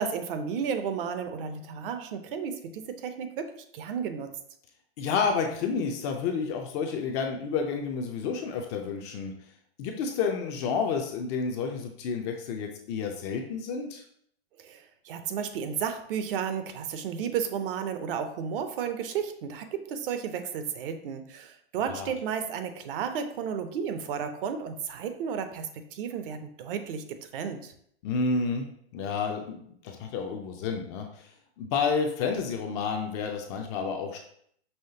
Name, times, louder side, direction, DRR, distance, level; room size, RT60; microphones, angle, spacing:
voice 1, 0.0-4.3 14.6-27.7, right 7 dB, 55° right, 8 dB, 0.6 m, -33 dB
voice 2, 5.0-9.3 9.8-14.0 21.9-22.1 28.0-28.7 28.9-34.2, left 5 dB, 30° left, 3 dB, 0.3 m, -30 dB
5.6 x 3.1 x 2.7 m, 0.67 s
hypercardioid pair, 140°, 32 cm